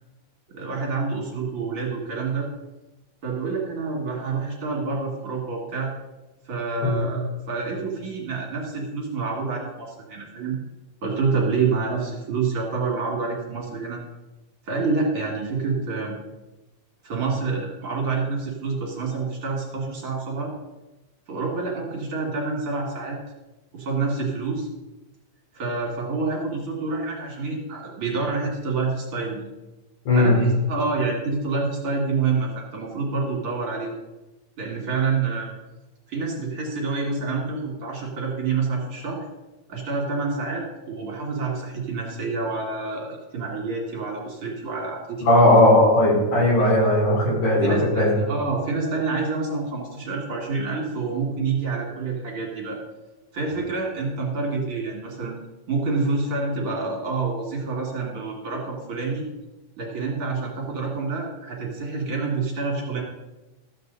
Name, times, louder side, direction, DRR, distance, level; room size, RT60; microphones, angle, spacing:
voice 1, 0.5-2.5 3.2-5.9 6.5-10.6 11.0-14.0 14.7-16.2 17.0-20.5 21.3-23.2 23.7-24.7 25.5-29.4 30.2-33.9 34.6-35.5 36.1-39.2 39.7-45.6 47.6-52.8 53.3-55.4 55.7-59.3 59.8-63.0, right 4 dB, 50° right, -2 dB, 2.7 m, -27 dB
voice 2, 30.1-30.4 45.2-48.1, left 1 dB, 75° left, -5 dB, 5.3 m, -17 dB
13.5 x 7.7 x 4.0 m, 1.1 s
omnidirectional pair, 3.5 m